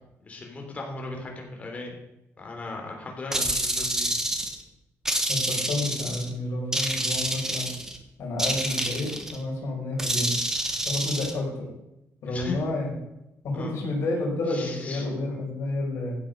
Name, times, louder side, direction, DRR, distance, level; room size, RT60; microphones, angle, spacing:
voice 1, 0.2-2.0 2.4-4.1 7.1-7.3 12.3-12.5 13.5-13.7 14.5-15.1, left 3 dB, 25° left, 1 dB, 3.3 m, -37 dB
sound 1, 3.3-4.6 5.1-6.3 6.7-8.0 8.4-9.4 10.0-11.3, right 1 dB, 10° right, 1.3 m, -28 dB
voice 2, 5.3-7.7 8.2-10.4 10.8-11.7 12.2-12.9 13.4-16.2, left 2 dB, 60° left, -3 dB, 6.1 m, -30 dB
15.0 x 8.2 x 5.3 m, 0.89 s
cardioid pair, 155°, 5 cm